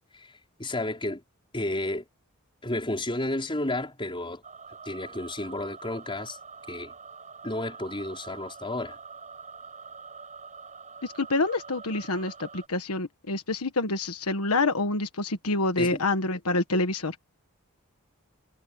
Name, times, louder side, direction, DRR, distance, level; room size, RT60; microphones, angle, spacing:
voice 1, 0.6-1.2 1.5-2.0 2.6-4.4 4.8-6.4 6.7-6.9 7.4-9.0 15.8-16.0 16.7-16.8, left 1 dB, 25° left, 5.1 m, -32 dB
sound 1, 4.4-12.7, right 5 dB, 35° right, 5.6 m, -45 dB
voice 2, 11.0-17.1, left 2 dB, 80° left, 1.4 m, -27 dB
head